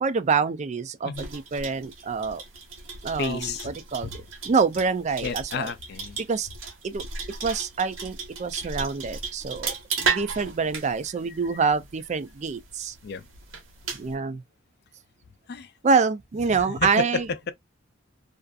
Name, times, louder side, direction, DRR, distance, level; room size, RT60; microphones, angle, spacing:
voice 1, 0.0-2.4 3.0-5.7 6.3-6.5 6.8-7.0 7.4-12.9 14.0-14.4 15.8-17.3, right 5 dB, 35° right, 0.4 m, -26 dB
sound 1, 1.1-14.1, right 5 dB, 80° right, 1.0 m, -35 dB
voice 2, 3.2-3.7 4.0-4.1 5.2-6.2 13.0-13.3 15.5-15.7 16.5-17.5, left 5 dB, 55° left, 0.4 m, -31 dB
2.5 x 2.4 x 2.3 m
head